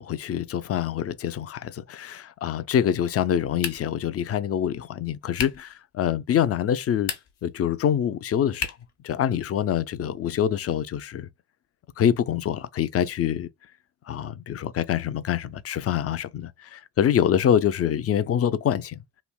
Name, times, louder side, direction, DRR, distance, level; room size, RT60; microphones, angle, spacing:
voice 1, 0.0-7.1 7.4-8.7 9.0-11.3 12.0-13.5 14.1-19.0, left 9 dB, 35° left, 0.4 m, -25 dB
sound 1, 3.6-4.1 5.3-5.7 6.9-7.5 8.6-9.0, left 7 dB, 65° left, 0.9 m, -33 dB
3.1 x 2.5 x 2.2 m
hypercardioid pair, 45°, 43 cm